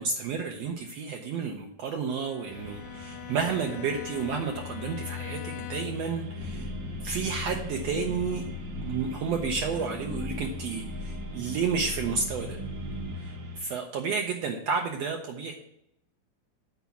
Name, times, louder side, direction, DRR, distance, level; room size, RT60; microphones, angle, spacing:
voice 1, 0.0-6.7 7.0-8.4 8.7-12.6 13.1-15.6, right 5 dB, 80° right, 3 dB, 1.4 m, -31 dB
Bowed string instrument, 2.1-6.2, left 15 dB, 80° left, 2.1 m, -43 dB
sound 1, 2.5-13.6, left 2 dB, 50° right, 2.2 m, -41 dB
sound 2, 6.4-13.1, left 1 dB, 10° right, 2.3 m, -38 dB
8.1 x 4.7 x 7.1 m, 0.78 s
omnidirectional pair, 3.9 m